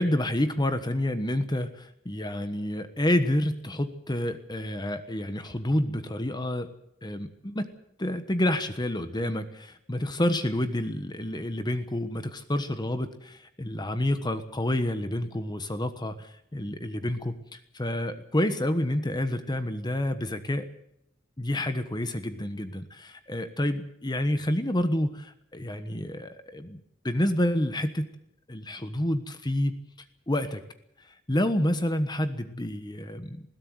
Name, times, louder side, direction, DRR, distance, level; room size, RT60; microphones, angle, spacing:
voice 1, 0.0-6.7 7.0-7.7 8.0-20.7 21.4-28.1 28.5-29.8 30.3-30.6 31.3-33.4, left 1 dB, 20° left, 10 dB, 1.2 m, -29 dB
20.5 x 16.5 x 8.0 m, 0.75 s
head